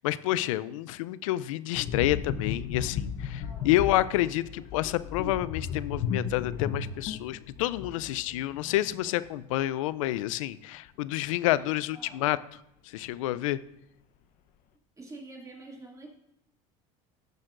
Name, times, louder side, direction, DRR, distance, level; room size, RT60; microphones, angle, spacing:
voice 1, 0.0-12.4 12.9-13.6, left 15 dB, 85° left, 17 dB, 0.4 m, -29 dB
sound 1, 1.7-9.2 9.4-9.6, left 7 dB, 55° left, 0.8 m, -35 dB
voice 2, 3.4-3.7 11.5-12.2 15.0-16.1, right 2 dB, 20° right, 0 dB, 2.2 m, -47 dB
15.5 x 6.5 x 2.5 m, 0.80 s
supercardioid pair, 90°, 17 cm